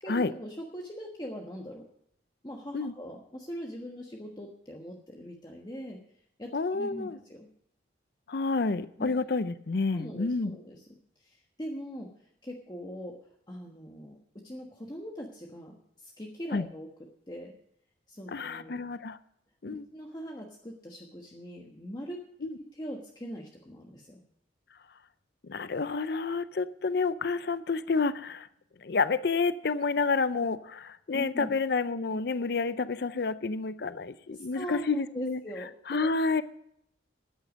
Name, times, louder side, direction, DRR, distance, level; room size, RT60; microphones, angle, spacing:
voice 1, 0.0-1.9 2.4-6.0 6.4-7.5 9.0-9.1 9.9-10.9 11.2-16.9 17.3-17.5 18.1-18.8 19.7-22.2 22.6-24.2 31.1-31.5 32.1-32.2 34.3-36.1, equal, 20° left, 0 dB, 1.3 m, -42 dB
voice 2, 6.5-7.2 8.3-10.6 16.5-16.7 18.3-19.2 19.6-19.8 22.4-22.5 25.5-28.5 28.8-35.4 35.9-36.4, left 4 dB, 55° left, 14 dB, 0.5 m, -29 dB
13.5 x 10.0 x 5.1 m, 0.73 s
head